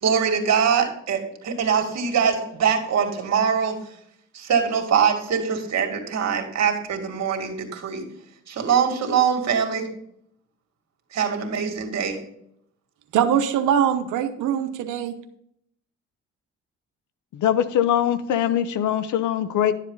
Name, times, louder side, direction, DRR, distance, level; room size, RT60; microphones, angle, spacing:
voice 1, 0.0-3.8 4.3-8.0 8.5-9.9 11.1-12.2, right 7 dB, 60° right, 4 dB, 2.3 m, -23 dB
voice 2, 13.1-15.1, right 9 dB, 85° right, 7 dB, 1.0 m, -22 dB
voice 3, 17.3-19.7, left 10 dB, 80° left, 13 dB, 0.9 m, -22 dB
11.5 x 7.5 x 4.0 m, 0.71 s
cardioid pair, 90°, 30 cm